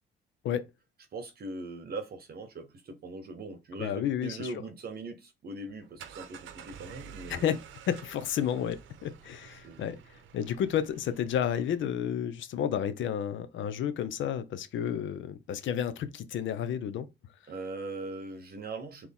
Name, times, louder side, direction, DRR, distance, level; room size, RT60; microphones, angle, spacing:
voice 1, 1.1-7.5 9.6-10.0 17.5-19.1, right 3 dB, 50° right, 0.9 m, -41 dB
voice 2, 3.8-4.5 7.3-7.6 7.9-17.1, left 9 dB, 75° left, 0.7 m, -31 dB
sound 1, 5.7-12.1, right 8 dB, 80° right, 0.7 m, -50 dB
4.1 x 3.0 x 3.5 m
cardioid pair, 90°, 20 cm